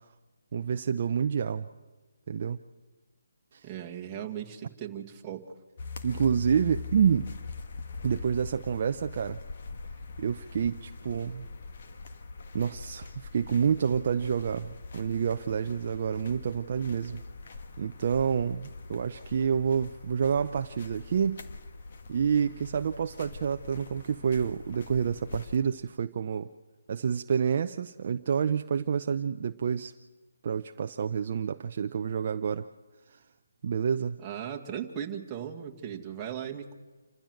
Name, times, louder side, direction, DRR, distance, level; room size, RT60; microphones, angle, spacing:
voice 1, 0.5-1.7 2.3-2.6 3.5-3.7 6.0-7.3 8.0-9.4 10.2-11.5 12.5-17.2 17.8-21.4 22.1-26.5 26.9-29.9 30.4-32.6 33.1-33.2 33.6-34.2, right 7 dB, 45° right, 8 dB, 0.6 m, -28 dB
voice 2, 3.6-5.4 34.2-36.8, right 9 dB, 15° right, 0 dB, 1.9 m, -37 dB
sound 1, 5.8-25.6, left 4 dB, 50° left, 1.7 m, -43 dB
28.0 x 15.0 x 7.8 m, 1.3 s
hypercardioid pair, 160°, 0 cm